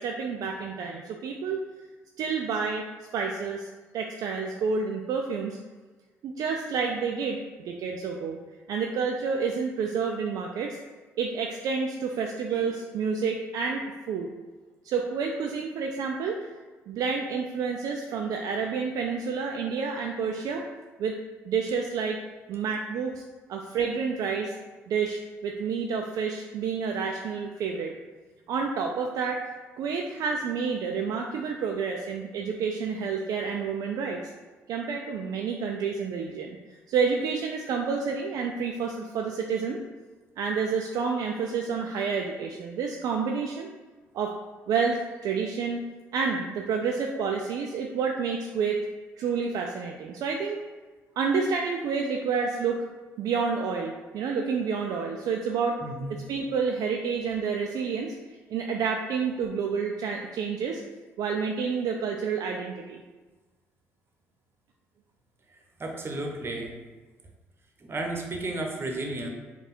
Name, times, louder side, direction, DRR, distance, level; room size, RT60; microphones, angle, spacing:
voice 1, 0.0-1.6 2.2-2.8 3.1-3.7 3.9-5.6 6.2-8.4 8.7-10.8 11.2-14.3 14.8-16.4 16.9-20.6 21.0-21.2 21.5-22.2 22.5-23.2 23.5-24.6 24.9-27.9 28.5-29.4 29.8-34.2 34.7-36.6 36.9-39.8 40.4-43.7 44.1-44.3 44.7-45.8 46.1-48.8 49.2-50.6 51.2-52.8 53.2-55.8 56.1-58.1 58.5-60.8 61.2-63.0, right 5 dB, 60° right, 1 dB, 0.3 m, -29 dB
voice 2, 55.8-56.2 65.8-66.8 67.8-69.3, right 2 dB, 35° right, 1 dB, 0.9 m, -33 dB
3.4 x 2.3 x 4.3 m, 1.3 s
hypercardioid pair, 55°, 7 cm